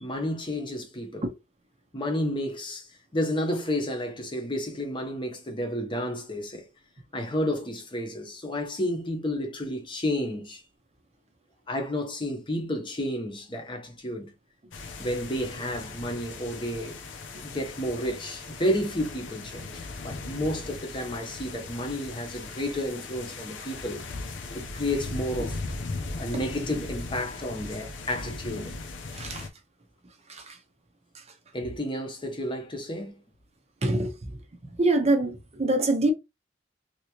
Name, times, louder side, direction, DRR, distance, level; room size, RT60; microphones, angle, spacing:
voice 1, 0.0-1.3 1.9-2.9 3.1-6.7 7.1-10.6 11.7-14.3 15.0-17.0 17.4-24.0 24.5-25.6 26.2-28.8 31.5-33.2, left 1 dB, 25° left, 0.8 m, -31 dB
sound 1, 14.7-29.5, left 3 dB, 85° left, 0.7 m, -38 dB
voice 2, 29.1-29.5 30.3-30.4 33.8-34.1 34.8-36.1, right 2 dB, 35° right, 0.6 m, -24 dB
3.3 x 2.8 x 2.9 m
head